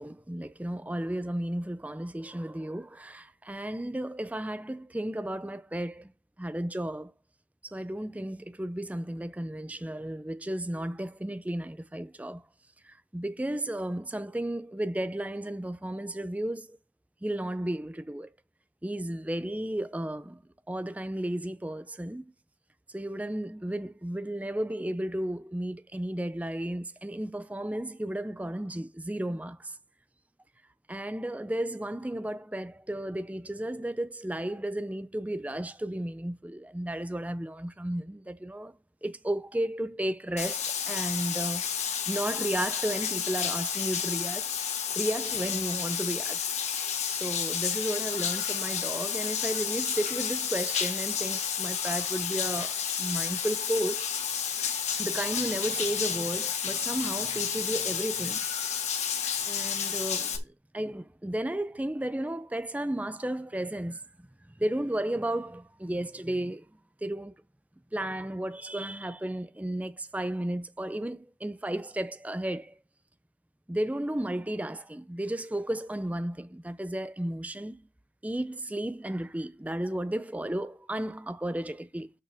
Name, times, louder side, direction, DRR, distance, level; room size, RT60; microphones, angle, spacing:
voice 1, 0.0-6.1 6.4-7.1 7.6-12.4 12.8-16.8 17.2-18.3 18.8-20.4 20.7-22.2 22.9-29.8 30.9-38.7 39.0-44.5 44.9-46.4 47.1-54.1 55.0-58.4 59.4-66.7 67.0-67.3 67.9-72.7 73.7-77.8 78.2-82.1, right 1 dB, 10° right, 0.4 m, -33 dB
Bathtub (filling or washing), 40.4-60.4, left 7 dB, 40° left, 1.5 m, -31 dB
12.5 x 5.9 x 3.5 m
head